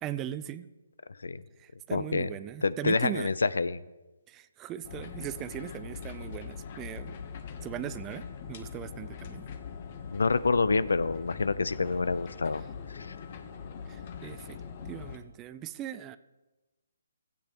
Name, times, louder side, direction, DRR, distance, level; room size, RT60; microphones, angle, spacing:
voice 1, 0.0-0.7 1.6-3.3 4.3-7.2 7.6-9.5 13.9-14.6 14.9-16.2, right 11 dB, 15° right, 14 dB, 0.3 m, -39 dB
voice 2, 1.9-2.3 2.6-3.8 10.1-12.6 12.9-13.2, left 4 dB, 85° left, 17 dB, 0.5 m, -27 dB
sound 1, 4.8-15.2, left 6 dB, 35° left, 0.8 m, -42 dB
15.0 x 8.6 x 2.9 m, 1.1 s
hypercardioid pair, 160°, 0 cm